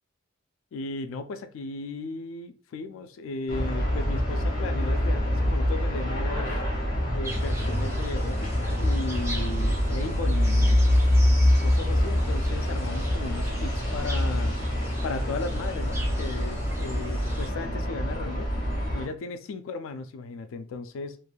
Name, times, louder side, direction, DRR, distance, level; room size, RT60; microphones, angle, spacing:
voice 1, 0.7-6.6 7.1-10.8 11.4-14.6 15.0-18.5 18.9-21.2, left 3 dB, 80° left, 0.3 m, -36 dB
sound 1, 3.5-19.0, left 1 dB, 45° left, 1.0 m, -25 dB
sound 2, 7.2-17.5, equal, 15° right, 0.5 m, -36 dB
3.2 x 2.5 x 2.2 m
head